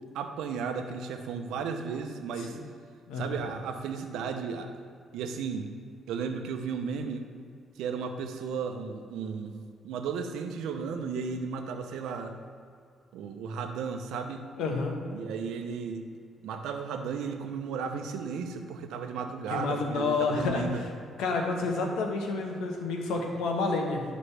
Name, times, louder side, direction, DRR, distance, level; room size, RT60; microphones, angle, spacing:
voice 1, 0.1-2.6 3.1-4.7 5.1-5.7 6.1-7.3 7.8-9.5 9.8-12.4 13.1-14.4 15.1-16.1 16.4-20.8, right 5 dB, 90° right, 5 dB, 0.7 m, -34 dB
voice 2, 14.6-14.9 19.5-20.6 21.2-24.0, left 3 dB, 90° left, 2 dB, 1.2 m, -29 dB
11.5 x 5.2 x 3.4 m, 2.3 s
cardioid pair, 90°, 0 cm